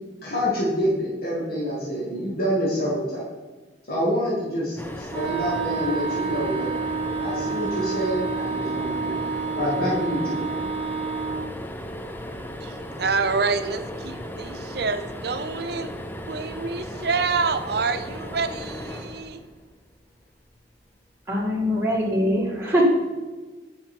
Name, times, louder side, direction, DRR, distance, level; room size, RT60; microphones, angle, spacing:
voice 1, 0.2-3.3 3.9-6.7 7.2-9.2 9.5-10.5, equal, 60° left, -7 dB, 2.4 m, -27 dB
sound 1, 4.8-20.0 21.7-21.9 22.2-22.3, equal, 10° left, 0.6 m, -36 dB
Wind instrument woodwind instrument, 5.1-11.5, right 5 dB, 30° right, 1.0 m, -29 dB
voice 2, 12.6-15.9 16.3-19.4, right 4 dB, 65° right, 9 dB, 0.7 m, -27 dB
voice 3, 21.3-22.8, equal, 15° right, -5 dB, 2.2 m, -23 dB
9.3 x 6.0 x 4.6 m, 1.3 s
head